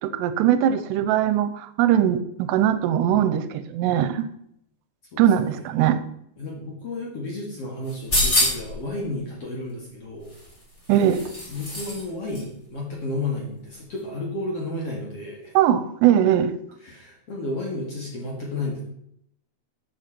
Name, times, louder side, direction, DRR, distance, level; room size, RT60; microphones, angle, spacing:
voice 1, 0.0-4.3 5.2-6.0 10.9-11.2 15.5-16.5, right 10 dB, 85° right, 11 dB, 2.8 m, -20 dB
voice 2, 5.1-5.5 6.4-10.3 11.5-15.5 16.8-18.8, left 2 dB, 45° left, -2 dB, 2.3 m, -32 dB
sound 1, 7.9-8.8 10.3-12.0 12.3-12.4, left 1 dB, 15° left, 3.6 m, -25 dB
13.0 x 7.2 x 4.5 m, 0.74 s
omnidirectional pair, 4.8 m